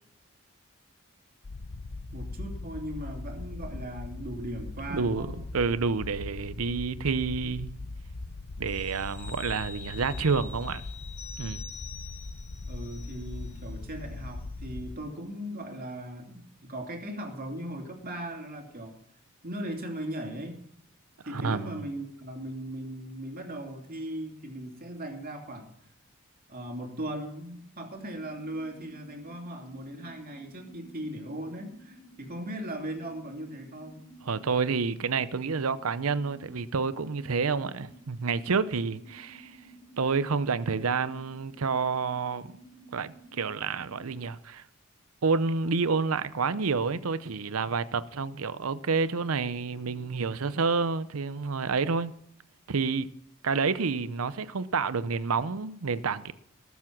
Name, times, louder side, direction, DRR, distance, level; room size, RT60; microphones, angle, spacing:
sound 1, 1.4-15.0, left 2 dB, 70° left, 0.8 m, -40 dB
voice 1, 2.1-5.4 12.6-19.0 19.4-20.6 21.2-25.7 26.5-34.0, right 1 dB, 45° right, 2.9 m, -38 dB
voice 2, 4.9-5.3 5.5-7.7 8.6-10.8 11.4-11.7 21.3-21.7 34.2-39.6 40.0-42.5 42.9-44.6 45.2-52.1 52.7-53.1 53.4-56.3, right 4 dB, 85° right, 0.7 m, -29 dB
sound 2, 8.7-13.8 14.1-14.3, left 7 dB, 30° left, 1.5 m, -46 dB
sound 3, 28.1-44.1, right 1 dB, 50° left, 4.5 m, -53 dB
19.5 x 7.3 x 6.0 m
head